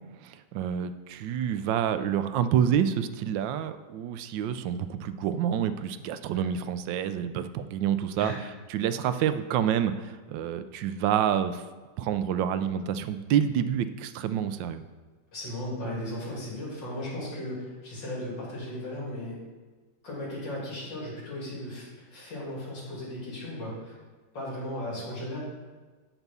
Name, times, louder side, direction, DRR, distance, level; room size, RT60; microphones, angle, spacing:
voice 1, 0.2-8.3 8.7-11.6 12.0-14.8, right 9 dB, 90° right, 11 dB, 1.3 m, -28 dB
voice 2, 15.3-19.4 20.0-24.0 24.3-25.4, left 1 dB, 85° left, -6 dB, 3.4 m, -36 dB
8.0 x 6.0 x 5.4 m, 1.3 s
omnidirectional pair, 1.9 m